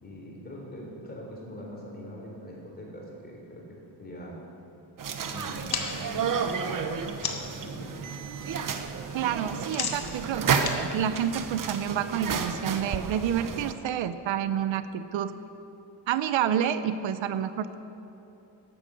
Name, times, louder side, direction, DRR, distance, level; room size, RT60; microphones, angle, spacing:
voice 1, 0.0-4.4 5.3-6.5 7.2-8.0, equal, 20° left, -2 dB, 3.9 m, -43 dB
sound 1, 5.0-13.7, right 6 dB, 45° right, 1.0 m, -31 dB
sound 2, 5.5-7.6 8.0-8.5 8.7-12.0, left 6 dB, 55° left, 1.4 m, -36 dB
voice 2, 9.1-15.3 16.1-17.7, right 9 dB, 85° right, 12 dB, 0.8 m, -29 dB
12.0 x 12.0 x 7.7 m, 2.9 s
cardioid pair, 140°, 45 cm